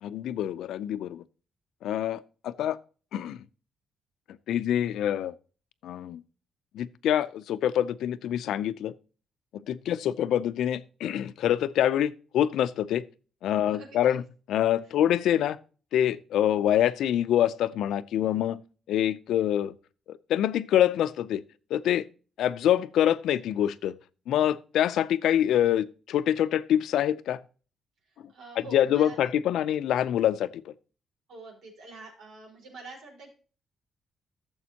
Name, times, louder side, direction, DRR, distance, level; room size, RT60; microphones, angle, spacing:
voice 1, 0.0-1.2 1.8-2.8 3.1-3.4 4.5-5.3 5.8-6.2 6.7-8.9 9.5-13.0 13.4-14.2 14.5-15.6 15.9-18.6 18.9-19.7 20.1-21.4 21.7-22.1 22.4-24.0 24.3-27.4 28.2-30.7, left 11 dB, 90° left, 0.5 m, -26 dB
voice 2, 13.6-14.2 28.3-29.3 31.3-33.3, right 3 dB, 90° right, 4.4 m, -46 dB
14.0 x 7.1 x 2.9 m
cardioid pair, 145°, 0 cm